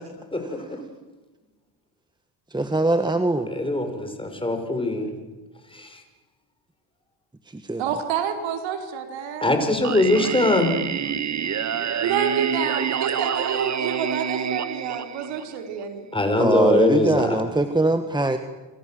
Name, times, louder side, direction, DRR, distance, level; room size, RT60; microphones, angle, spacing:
voice 1, 0.3-0.8 3.5-5.1 5.7-6.0 9.4-10.7 16.1-17.4, left 2 dB, 10° left, 6 dB, 5.7 m, -22 dB
voice 2, 2.5-3.5 7.5-7.8 16.4-18.4, right 2 dB, 10° right, 8 dB, 1.6 m, -22 dB
voice 3, 7.8-9.6 12.0-16.1, right 7 dB, 85° right, 5 dB, 4.6 m, -28 dB
Singing, 9.8-15.8, right 7 dB, 40° right, 1.5 m, -27 dB
28.5 x 26.0 x 7.8 m, 1.2 s
cardioid pair, 105°, 44 cm